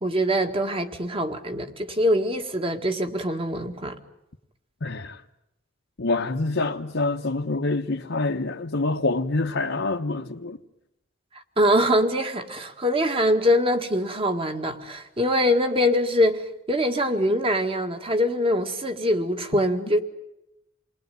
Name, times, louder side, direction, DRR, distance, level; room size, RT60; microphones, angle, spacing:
voice 1, 0.0-4.0 11.6-20.0, equal, 30° right, 2.0 m, -23 dB
voice 2, 4.8-5.2 6.0-10.6, left 2 dB, 70° left, 1.1 m, -26 dB
28.5 x 20.0 x 9.4 m
head